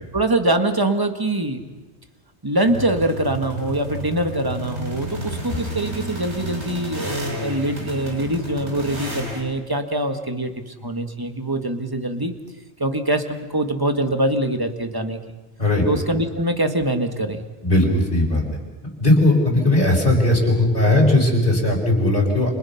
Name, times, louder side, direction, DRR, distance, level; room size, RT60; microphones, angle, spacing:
voice 1, 0.1-1.6 2.4-12.3 12.8-15.2 15.8-17.5, right 1 dB, 20° right, 6 dB, 1.7 m, -23 dB
sound 1, 2.7-9.4, right 1 dB, 85° right, 5.8 m, -31 dB
voice 2, 17.6-18.4 19.0-22.5, left 1 dB, 35° left, -3 dB, 5.2 m, -17 dB
29.5 x 26.5 x 5.8 m, 1.2 s
omnidirectional pair, 1.1 m